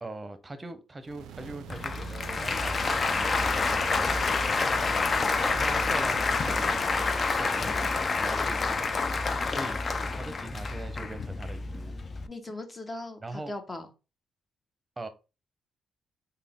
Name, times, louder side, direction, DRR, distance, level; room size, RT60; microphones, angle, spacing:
voice 1, 0.0-4.3 5.4-7.1 7.4-8.9 9.5-9.8 10.1-11.9 13.2-13.5 15.0-15.1, right 2 dB, 25° right, 0.7 m, -41 dB
sound 1, 1.0-7.1, right 7 dB, 80° right, 0.3 m, -43 dB
Applause, 1.7-12.3, left 4 dB, 45° left, 0.4 m, -28 dB
voice 2, 4.9-5.3 12.3-13.9, left 2 dB, 25° left, 0.9 m, -40 dB
3.4 x 2.2 x 3.5 m
supercardioid pair, 50°, 0 cm